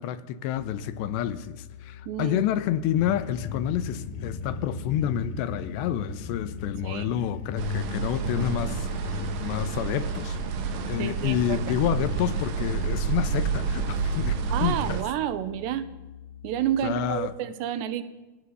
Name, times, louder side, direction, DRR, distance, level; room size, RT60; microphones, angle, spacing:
voice 1, 0.0-10.4 10.9-15.0 16.8-17.3, left 10 dB, 85° left, 3.3 m, -29 dB
sound 1, 0.6-17.1, left 9 dB, 20° left, 1.6 m, -46 dB
voice 2, 2.1-2.4 6.8-7.1 11.0-11.8 14.5-15.9 16.4-18.0, right 11 dB, 80° right, 3.5 m, -30 dB
sound 2, 3.0-14.9, left 5 dB, 70° left, 3.5 m, -36 dB
sound 3, 7.6-15.0, right 7 dB, 60° right, 3.3 m, -30 dB
26.5 x 18.5 x 6.8 m
omnidirectional pair, 4.9 m